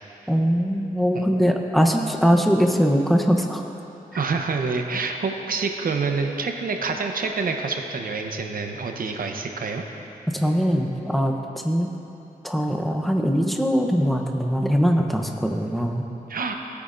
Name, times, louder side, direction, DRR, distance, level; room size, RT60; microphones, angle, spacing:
voice 1, 0.3-3.6 10.3-11.9 12.4-16.0, equal, ahead, 2 dB, 0.8 m, -21 dB
voice 2, 4.1-9.8 16.3-16.5, right 4 dB, 75° right, 4 dB, 0.8 m, -27 dB
17.0 x 8.3 x 2.6 m, 2.9 s
wide cardioid pair, 85°, 15 cm